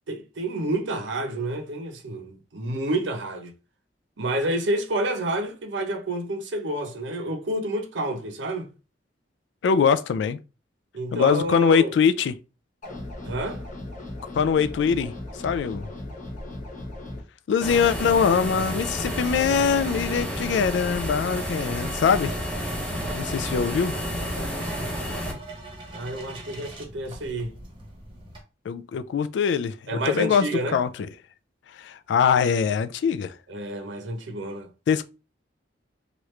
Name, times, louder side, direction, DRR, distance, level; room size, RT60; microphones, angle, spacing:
voice 1, 0.1-3.5 4.2-8.7 10.9-11.9 13.2-13.6 23.6-23.7 24.2-24.7 25.9-27.5 29.9-30.8 33.5-34.7, right 1 dB, 75° right, 0.7 m, -29 dB
voice 2, 9.6-10.4 11.1-12.4 14.3-15.1 15.4-15.9 17.5-22.3 23.1-24.0 28.7-30.9 31.8-33.3 34.9-35.0, left 6 dB, 70° left, 0.3 m, -22 dB
sound 1, 12.8-17.2, left 1 dB, 45° left, 1.0 m, -37 dB
sound 2, 17.6-25.3, equal, 5° left, 0.7 m, -30 dB
sound 3, 22.6-28.4, right 2 dB, 25° right, 0.9 m, -43 dB
3.0 x 2.4 x 3.1 m
head